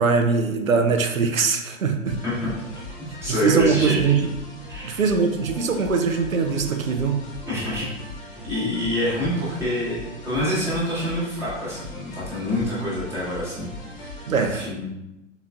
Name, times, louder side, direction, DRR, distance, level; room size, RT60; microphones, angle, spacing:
voice 1, 0.0-2.2 3.3-4.2 4.8-7.2 14.3-14.7, right 5 dB, 80° right, 6 dB, 0.7 m, -21 dB
sound 1, 2.0-14.5, left 2 dB, 25° left, 1.0 m, -40 dB
voice 2, 3.2-4.0 4.7-5.0 7.5-7.8 8.5-10.0 10.2-14.2 14.5-14.9, left 1 dB, 5° right, -9 dB, 1.1 m, -26 dB
4.0 x 3.9 x 2.3 m, 0.92 s
figure-of-eight pair, 120°, 40 cm